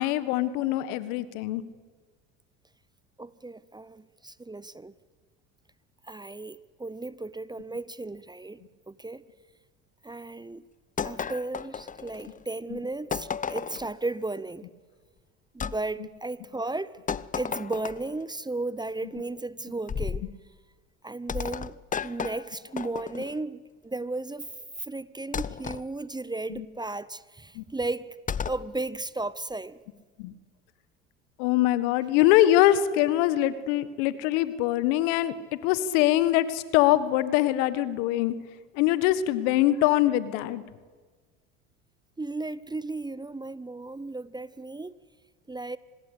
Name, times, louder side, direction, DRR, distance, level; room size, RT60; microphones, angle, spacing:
voice 1, 0.0-1.6 12.7-12.8 26.5-26.6 27.5-27.6 30.2-30.3 31.4-38.3 38.7-40.6, left 14 dB, 70° left, 1.6 m, -23 dB
voice 2, 3.2-4.9 6.0-8.6 8.9-9.2 10.0-10.6 11.0-14.7 15.5-17.0 17.4-20.2 21.0-21.8 22.0-24.5 24.8-28.2 28.5-29.8 42.2-45.0 45.5-45.8, right 2 dB, 10° right, 0.8 m, -35 dB
sound 1, 11.0-12.4 13.1-13.9 15.6-15.8 17.1-18.2 19.9-20.3 21.3-23.4 25.3-25.8 28.3-28.7, left 7 dB, 20° left, 0.7 m, -33 dB
25.5 x 20.5 x 8.4 m
hypercardioid pair, 75°, 37 cm